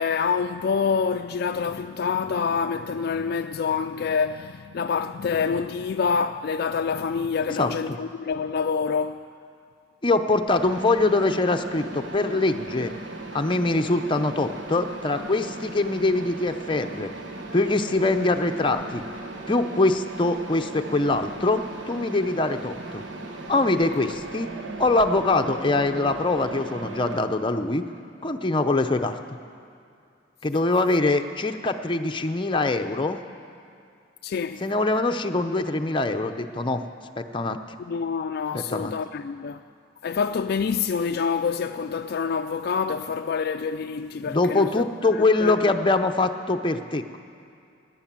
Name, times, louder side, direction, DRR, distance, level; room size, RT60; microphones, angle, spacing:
voice 1, 0.0-9.3 34.2-34.6 37.9-39.6 40.0-44.9 45.1-45.7, left 5 dB, 55° left, 0.4 m, -26 dB
voice 2, 10.0-12.9 13.3-17.1 17.5-19.0 19.5-23.0 23.5-24.5 24.8-27.8 28.2-29.2 30.4-33.2 34.6-36.8 37.2-37.6 38.5-38.9 44.2-47.2, left 2 dB, 25° left, 0.7 m, -23 dB
Mechanisms, 10.5-27.2, right 2 dB, 90° right, 1.3 m, -37 dB
17.5 x 10.0 x 7.5 m
head